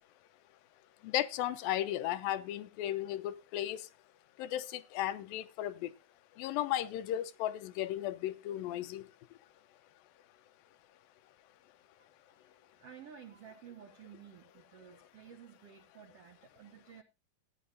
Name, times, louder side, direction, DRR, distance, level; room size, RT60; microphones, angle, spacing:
voice 1, 1.0-3.8 4.4-5.9 6.4-9.0, left 12 dB, 90° left, 2.5 m, -35 dB
voice 2, 12.8-17.0, right 8 dB, 70° right, 1.4 m, -53 dB
15.0 x 9.4 x 2.8 m
omnidirectional pair, 4.0 m